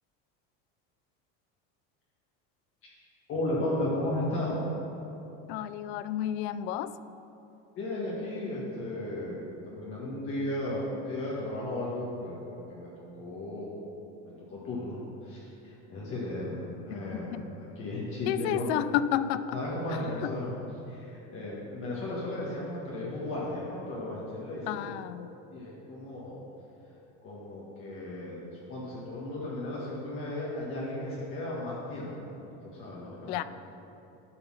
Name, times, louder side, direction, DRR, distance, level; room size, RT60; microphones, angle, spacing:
voice 1, 3.3-4.6 7.8-12.4 12.7-12.9 13.2-13.7 14.2-17.5 17.8-18.6 19.5-20.5 20.9-25.0 25.5-26.4 27.2-32.1 32.4-33.4, left 1 dB, 40° left, -6 dB, 1.7 m, -35 dB
voice 2, 5.5-6.9 17.3-17.4 18.3-19.6 19.9-20.3 24.7-25.3 33.3-33.4, left 11 dB, 85° left, 14 dB, 0.5 m, -31 dB
11.5 x 4.3 x 5.7 m, 2.9 s
cardioid pair, 135°, 31 cm